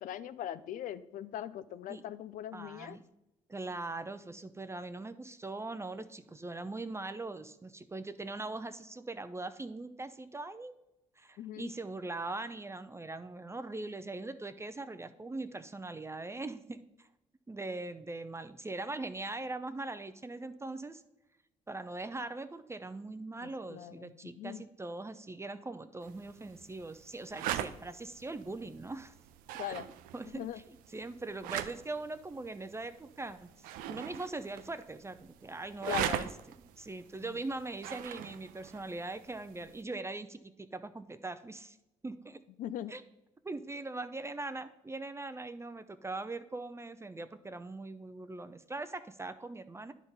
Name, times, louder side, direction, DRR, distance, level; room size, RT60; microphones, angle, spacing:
voice 1, 0.0-3.0 11.4-11.7 23.4-24.6 29.6-29.9 30.2-30.6 35.9-36.3 37.3-37.4 42.6-43.0, left 11 dB, 70° left, 14 dB, 0.5 m, -40 dB
voice 2, 2.5-3.0 3.5-10.7 11.2-17.1 17.5-21.0 21.7-29.1 29.7-29.8 30.1-30.5 30.9-33.5 33.9-36.3 36.8-41.8 42.0-42.4 42.9-43.0 43.4-49.9, right 2 dB, 20° right, 11 dB, 0.5 m, -41 dB
sound 1, 26.0-39.8, right 11 dB, 85° right, 0.4 m, -42 dB
10.5 x 3.7 x 5.4 m, 0.92 s
supercardioid pair, 60°, 14 cm